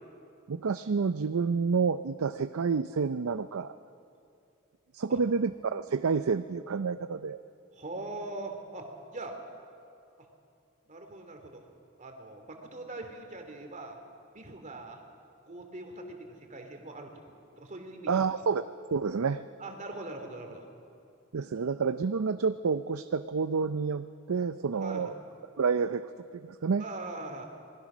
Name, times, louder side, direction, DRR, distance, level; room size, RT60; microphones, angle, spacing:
voice 1, 0.5-3.8 4.9-7.4 18.1-19.4 21.3-25.1 25.6-26.1 26.3-26.8, right 5 dB, 85° right, 11 dB, 0.5 m, -29 dB
voice 2, 7.7-9.3 10.9-11.6 12.0-14.0 14.3-15.0 15.5-17.1 17.6-18.2 19.6-20.6 24.8-25.1 26.8-27.4, right 2 dB, 35° right, 4 dB, 2.9 m, -41 dB
26.0 x 20.0 x 6.2 m, 2.5 s
head